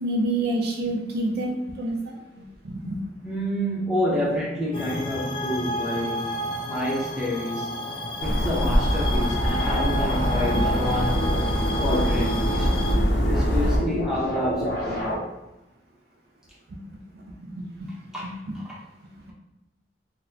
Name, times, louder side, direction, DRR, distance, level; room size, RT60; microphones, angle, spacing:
voice 1, 0.0-3.0 16.7-16.8 17.3-17.9 18.5-18.6, right 1 dB, 60° right, 0 dB, 0.4 m, -28 dB
voice 2, 3.2-6.4 6.6-7.7 8.2-11.3 11.8-12.7 13.3-15.1 18.1-18.4 18.7-18.8, left 1 dB, 5° right, -7 dB, 0.8 m, -28 dB
sound 1, 4.7-13.0, equal, 30° left, 0.3 m, -31 dB
sound 2, 8.2-13.8, equal, 85° left, 0.7 m, -24 dB
sound 3, 9.6-15.2, equal, 60° left, 1.0 m, -30 dB
3.9 x 2.1 x 2.7 m, 0.91 s
head